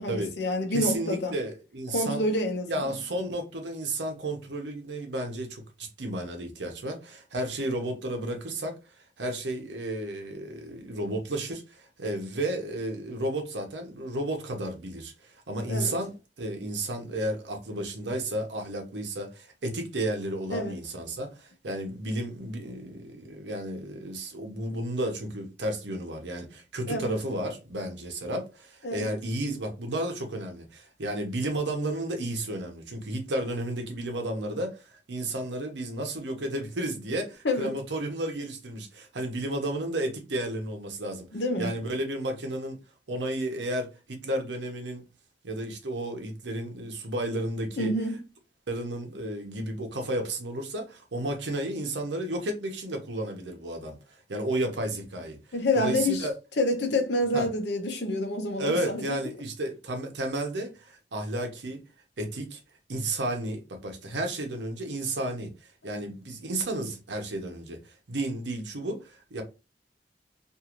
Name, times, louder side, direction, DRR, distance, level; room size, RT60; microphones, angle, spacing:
voice 1, 0.0-1.4 1.9-2.9 15.7-15.9 20.5-20.8 26.9-27.1 28.8-29.1 37.4-37.8 41.3-41.7 47.8-48.2 55.5-56.3 56.6-59.1 65.9-66.0, left 1 dB, 70° left, 0.7 m, -28 dB
voice 2, 0.7-2.2 2.7-8.8 9.2-41.3 41.6-42.8 43.1-45.0 45.4-47.9 48.7-55.4 55.7-56.3 57.3-57.5 58.6-61.8 62.2-62.6 62.9-65.5 65.8-69.4, right 1 dB, 90° right, 0.8 m, -32 dB
2.6 x 2.5 x 2.9 m
head